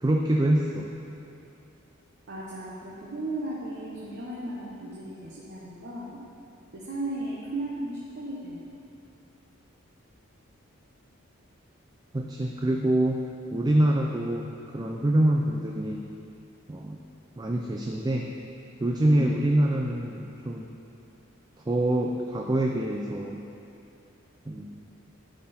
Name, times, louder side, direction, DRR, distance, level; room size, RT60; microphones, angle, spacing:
voice 1, 0.0-0.9 12.1-13.2 13.5-16.1 16.7-17.0 17.4-18.3 18.8-20.7 21.7-23.5 24.5-24.8, right 1 dB, 20° right, 0 dB, 0.4 m, -25 dB
voice 2, 2.3-6.2 6.7-7.9 8.2-8.7 19.1-19.3, right 1 dB, 55° right, -6 dB, 1.1 m, -35 dB
11.5 x 5.8 x 4.3 m, 2.7 s
head